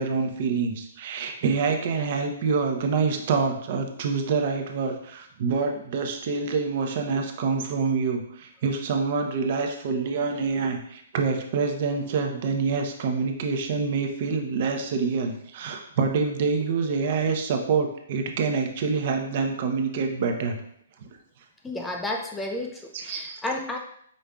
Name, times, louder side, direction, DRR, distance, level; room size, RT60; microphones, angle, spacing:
voice 1, 0.0-20.6 21.0-21.1 22.9-23.4, right 5 dB, 45° right, 4 dB, 0.7 m, -26 dB
voice 2, 21.6-23.8, left 1 dB, 10° left, 2 dB, 0.3 m, -32 dB
5.2 x 3.6 x 2.3 m, 0.68 s
hypercardioid pair, 150°, 0 cm